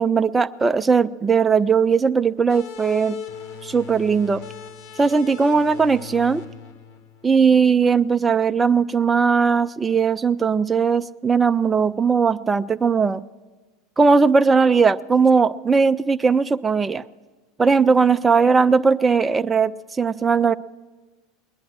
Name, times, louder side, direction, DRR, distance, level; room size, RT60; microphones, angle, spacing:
voice 1, 0.0-3.2 3.6-4.4 5.0-6.4 7.2-13.2 14.0-17.0 17.6-20.5, right 5 dB, 20° right, 11 dB, 0.4 m, -18 dB
sound 1, 2.5-7.8, left 7 dB, 55° left, 1.8 m, -39 dB
20.5 x 10.0 x 6.5 m, 1.3 s
figure-of-eight pair, 80°, 0 cm